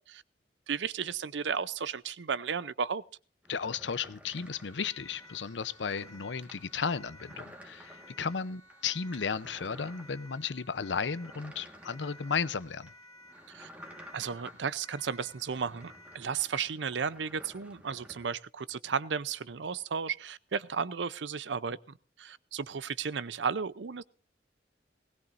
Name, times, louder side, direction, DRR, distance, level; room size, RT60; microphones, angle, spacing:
voice 1, 0.7-3.0 13.5-13.7 14.1-24.0, right 6 dB, 80° right, 0.6 m, -34 dB
sound 1, 3.4-18.3, equal, 10° right, 1.6 m, -53 dB
voice 2, 3.5-12.9, left 6 dB, 90° left, 0.7 m, -34 dB
Siren, 4.3-16.3, left 1 dB, 20° left, 2.4 m, -56 dB
19.5 x 17.5 x 2.6 m
head